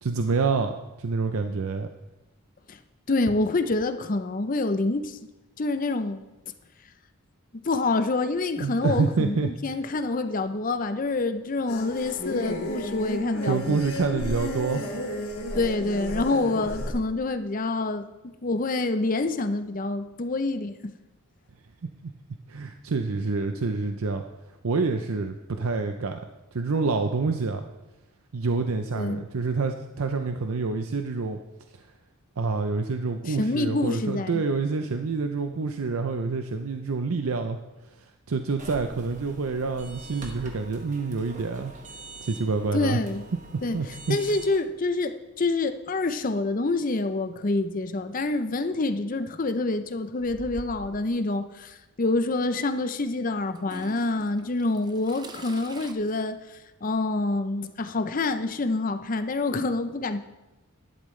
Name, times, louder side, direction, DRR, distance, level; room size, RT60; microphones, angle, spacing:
voice 1, 0.0-0.7 1.0-1.9 8.6-9.5 13.4-14.8 22.5-24.2 24.6-26.2 26.5-27.6 28.3-31.4 32.4-37.6 38.3-41.7 42.2-43.0 43.7-44.2, right 4 dB, 75° right, 6 dB, 0.6 m, -27 dB
voice 2, 3.1-5.2 5.6-6.2 7.6-13.8 15.5-18.1 18.4-20.8 28.9-29.2 33.3-34.4 42.7-43.2 43.6-60.2, left 2 dB, 40° left, 10 dB, 0.6 m, -27 dB
sound 1, 11.7-16.9, equal, 85° left, 2.2 m, -33 dB
sound 2, 38.6-44.6, right 2 dB, 35° right, 1.3 m, -44 dB
Toilet flush / Trickle dribble, 50.2-51.1 52.2-52.3 53.6-55.9, right 2 dB, 20° right, 0.5 m, -44 dB
11.5 x 11.0 x 3.2 m, 1.0 s
head